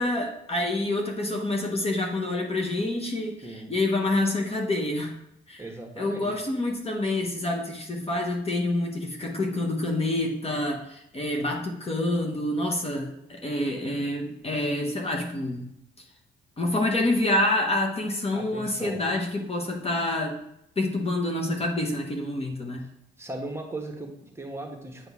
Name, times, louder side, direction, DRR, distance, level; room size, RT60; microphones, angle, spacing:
voice 1, 0.0-5.1 5.5-5.6 6.0-15.7 16.0-16.1 16.6-20.3 20.8-22.9, left 1 dB, 30° left, 1 dB, 1.0 m, -27 dB
voice 2, 3.4-3.7 5.6-6.3 18.3-19.0 22.8-22.9 23.2-25.1, right 2 dB, 15° right, 1 dB, 1.2 m, -38 dB
8.6 x 3.8 x 3.6 m, 0.80 s
cardioid pair, 90°, 20 cm